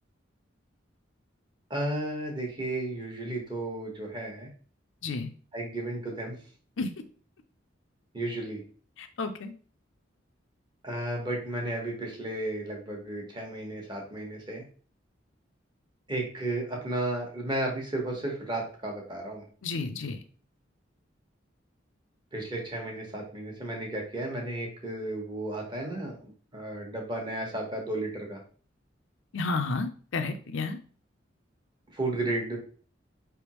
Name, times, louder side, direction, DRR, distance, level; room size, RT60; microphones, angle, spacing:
voice 1, 1.7-4.5 5.5-6.4 8.1-8.6 10.8-14.6 16.1-19.5 22.3-28.4 31.9-32.6, right 1 dB, 25° right, 0 dB, 1.1 m, -33 dB
voice 2, 9.0-9.5 19.6-20.2 29.3-30.8, left 3 dB, 85° left, 7 dB, 0.6 m, -31 dB
4.6 x 3.5 x 3.0 m, 0.42 s
head